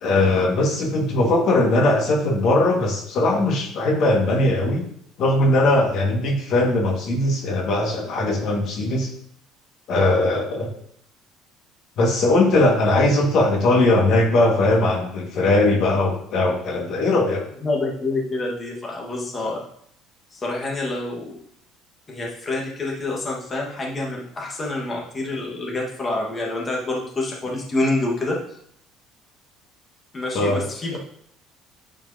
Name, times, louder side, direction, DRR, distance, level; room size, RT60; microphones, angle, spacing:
voice 1, 0.0-4.8 5.2-9.1 9.9-10.7 12.0-17.4 30.3-30.6, left 2 dB, 60° left, 0 dB, 1.7 m, -19 dB
voice 2, 17.6-19.6 20.3-21.4 22.1-28.4 30.1-31.0, left 2 dB, 25° left, -2 dB, 1.4 m, -27 dB
9.2 x 4.6 x 2.7 m, 0.68 s
cardioid pair, 110°, 0 cm